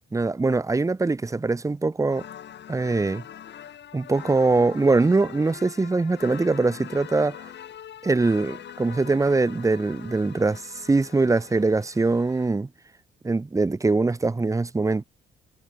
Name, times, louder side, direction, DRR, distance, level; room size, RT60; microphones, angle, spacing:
voice 1, 0.1-2.2 2.7-3.2 3.9-7.4 8.0-12.7 13.2-15.0, right 3 dB, 15° right, 0.8 m, -22 dB
sound 1, 2.1-12.5, left 10 dB, 60° left, 2.4 m, -43 dB
cardioid pair, 90°, 20 cm